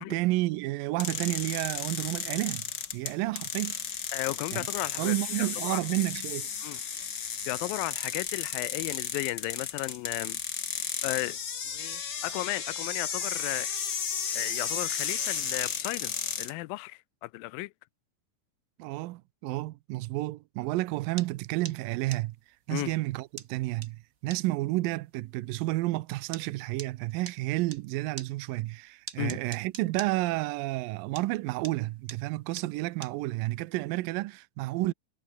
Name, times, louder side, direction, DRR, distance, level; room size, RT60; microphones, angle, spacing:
voice 1, 0.0-2.7 2.9-3.8 4.5-4.7 5.0-6.5 18.8-22.4 22.7-34.9, right 19 dB, 80° right, 2.4 m, -31 dB
sound 1, 1.0-16.5, left 7 dB, 40° left, 1.7 m, -34 dB
voice 2, 4.1-5.8 6.6-6.8 7.5-10.4 11.0-11.4 11.7-13.7 14.3-17.7 22.7-22.9 29.2-29.4, left 21 dB, 85° left, 2.4 m, -35 dB
sound 2, 21.2-27.8 28.2-30.9 31.1-33.8, right 5 dB, 35° right, 1.4 m, -44 dB
omnidirectional pair, 4.1 m